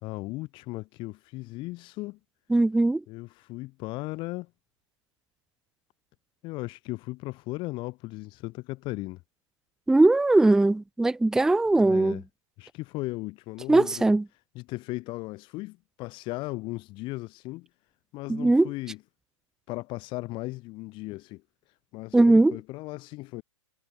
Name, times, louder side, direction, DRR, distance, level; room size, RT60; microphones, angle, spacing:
voice 1, 0.0-2.2 3.1-4.5 6.4-9.2 11.8-12.2 12.6-14.1 14.5-17.7 18.1-19.0 19.7-21.4 21.9-23.4, left 21 dB, 30° left, 4.4 m, -36 dB
voice 2, 2.5-3.0 9.9-12.2 13.7-14.2 18.3-18.7 22.1-22.6, right 2 dB, 5° right, 0.9 m, -20 dB
hypercardioid pair, 150°, 17 cm